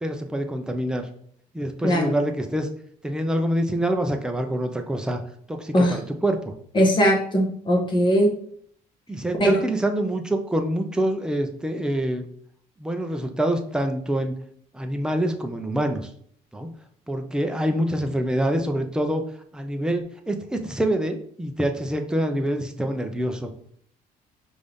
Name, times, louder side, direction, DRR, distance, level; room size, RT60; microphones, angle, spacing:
voice 1, 0.0-1.0 1.5-2.7 3.0-5.2 5.5-6.5 9.1-12.3 12.8-14.3 14.7-16.1 16.5-16.7 17.1-19.2 19.5-23.5, right 1 dB, 5° right, 5 dB, 0.5 m, -26 dB
voice 2, 1.8-2.1 5.7-6.0 6.7-8.3 9.4-9.6, equal, 25° left, 0 dB, 1.3 m, -19 dB
5.3 x 2.6 x 3.5 m, 0.62 s
cardioid pair, 110°, 17 cm